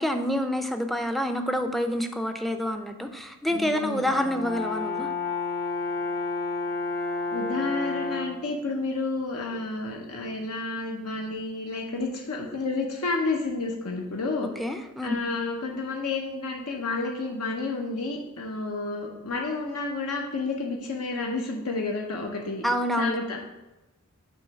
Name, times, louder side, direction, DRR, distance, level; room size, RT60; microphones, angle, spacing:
voice 1, 0.0-5.1 14.6-15.2 22.6-23.2, equal, ahead, 7 dB, 0.4 m, -27 dB
voice 2, 3.5-4.1 7.3-14.5 15.0-22.7 23.0-23.4, left 3 dB, 90° left, 0 dB, 0.7 m, -30 dB
Brass instrument, 4.1-8.5, left 3 dB, 45° left, 0.7 m, -30 dB
6.2 x 3.0 x 5.6 m, 1.0 s
head